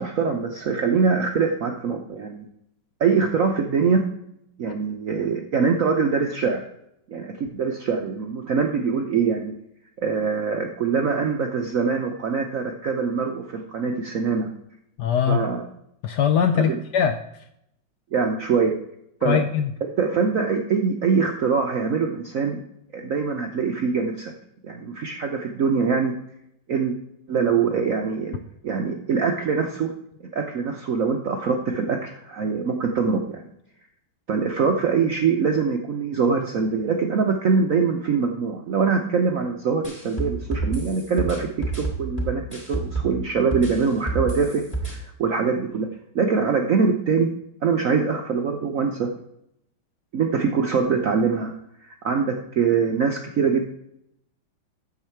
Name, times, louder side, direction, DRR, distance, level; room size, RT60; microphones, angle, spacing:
voice 1, 0.0-2.4 3.0-4.0 4.6-6.7 7.1-9.5 10.0-14.5 15.3-15.6 16.5-16.8 18.1-18.7 19.2-19.4 20.0-22.6 22.9-24.3 24.6-26.1 26.7-26.9 27.3-29.9 30.3-33.4 34.3-45.9 46.1-47.3 47.6-49.1 50.1-51.5 51.8-53.7, right 5 dB, 65° right, 3 dB, 0.8 m, -23 dB
voice 2, 15.0-15.4 16.0-17.4 19.2-19.7, left 8 dB, 75° left, 8 dB, 1.0 m, -22 dB
sound 1, 39.8-43.2 43.5-44.9, right 3 dB, 20° left, 2.5 m, -28 dB
9.5 x 7.3 x 4.4 m, 0.78 s
omnidirectional pair, 2.2 m